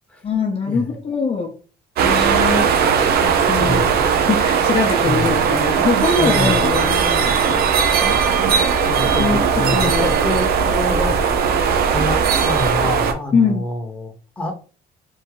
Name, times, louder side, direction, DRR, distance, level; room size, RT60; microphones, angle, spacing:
voice 1, 0.2-1.5 2.0-3.9 4.3-8.1 9.1-9.4 9.7-10.1 13.3-13.6, left 5 dB, 35° left, 2 dB, 1.0 m, -23 dB
sound 1, 2.0-13.1, right 6 dB, 70° right, 0.8 m, -18 dB
voice 2, 3.6-3.9 5.0-5.4 6.1-6.7 8.8-11.5 11.9-12.2 12.4-14.5, left 1 dB, 5° left, 1 dB, 1.2 m, -26 dB
3.6 x 2.7 x 4.8 m, 0.36 s
cardioid pair, 110°, 17 cm